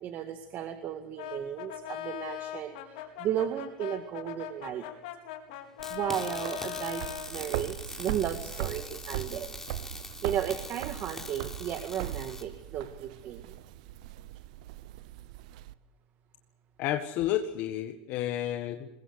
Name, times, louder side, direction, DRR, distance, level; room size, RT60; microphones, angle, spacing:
voice 1, 0.0-4.9 5.9-9.5 9.9-13.4, right 10 dB, 50° right, 7 dB, 2.0 m, -34 dB
Brass instrument, 1.2-7.3, left 11 dB, 85° left, 4.6 m, -40 dB
sound 1, 5.8-12.4, left 2 dB, 10° left, 3.8 m, -43 dB
sound 2, 5.8-15.7, right 14 dB, 80° right, 0.8 m, -40 dB
voice 2, 16.8-18.9, left 12 dB, 60° left, 6 dB, 1.7 m, -31 dB
22.0 x 21.5 x 8.2 m, 0.95 s
supercardioid pair, 110°, 4 cm